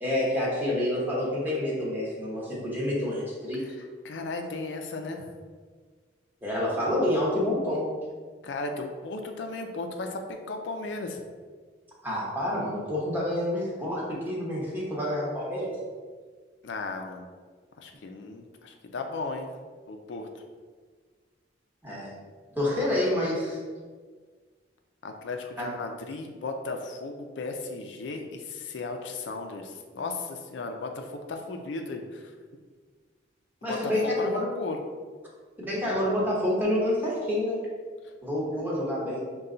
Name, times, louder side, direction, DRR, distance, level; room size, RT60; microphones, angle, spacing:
voice 1, 0.0-3.6 6.4-7.9 12.0-15.7 21.8-22.1 22.5-23.6 25.6-25.7 33.6-34.5 35.6-37.6 38.2-39.2, left 1 dB, 10° right, -5 dB, 1.0 m, -28 dB
voice 2, 3.6-5.2 8.4-11.2 16.6-17.2 17.8-19.5 19.9-20.3 25.0-32.3 33.6-34.8, left 3 dB, 80° left, 4 dB, 0.5 m, -35 dB
5.5 x 2.3 x 3.8 m, 1.5 s
head